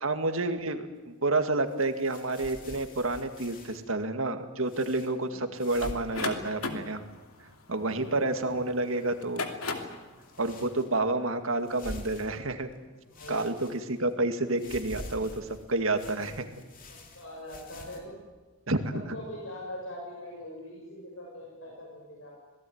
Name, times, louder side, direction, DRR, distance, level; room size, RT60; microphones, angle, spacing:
voice 1, 0.0-7.0 7.7-9.5 10.4-12.7 13.3-16.3 18.7-18.8, right 2 dB, 65° right, 7 dB, 2.1 m, -29 dB
sound 1, 1.7-3.8 4.7-5.1 5.5-6.1 6.4-6.5 7.0-7.6 8.7-9.4 10.2-11.1 11.6-12.7 13.1-14.1 14.5-18.0, left 1 dB, 40° left, 3.2 m, -46 dB
sound 2, 5.8-8.5 9.1-10.0, left 3 dB, 85° left, 2.7 m, -35 dB
voice 2, 7.9-8.3 13.0-13.6 16.2-16.3 16.9-18.1 18.9-22.3, left 1 dB, 70° left, -2 dB, 6.8 m, -42 dB
26.0 x 18.5 x 9.5 m, 1.2 s
head